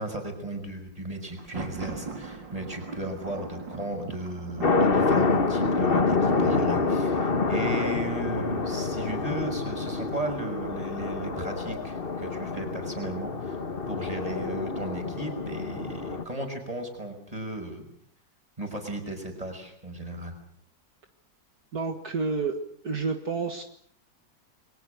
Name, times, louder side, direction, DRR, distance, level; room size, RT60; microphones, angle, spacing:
voice 1, 0.0-13.6 13.9-17.9 18.6-20.3, right 1 dB, 20° right, 5 dB, 6.0 m, -35 dB
Thunder, 1.3-9.0, right 4 dB, 85° right, 4.0 m, -42 dB
sound 1, 4.6-16.2, left 4 dB, 35° left, 1.6 m, -27 dB
voice 2, 21.7-22.6 22.8-23.6, right 4 dB, 55° right, 6 dB, 2.1 m, -29 dB
29.5 x 23.0 x 6.5 m, 0.62 s
omnidirectional pair, 1.9 m